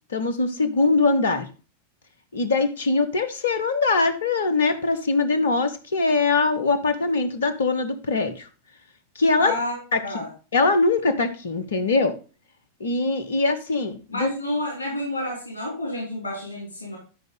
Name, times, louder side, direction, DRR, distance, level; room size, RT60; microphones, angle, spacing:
voice 1, 0.1-1.5 2.3-8.5 9.1-9.5 9.9-10.0 10.5-12.1 12.8-14.3, left 3 dB, 65° left, 10 dB, 1.3 m, -22 dB
voice 2, 9.4-9.8 10.0-10.3 14.1-17.0, left 1 dB, 90° right, -2 dB, 4.1 m, -29 dB
12.5 x 5.2 x 3.9 m, 0.34 s
figure-of-eight pair, 90°, 0 cm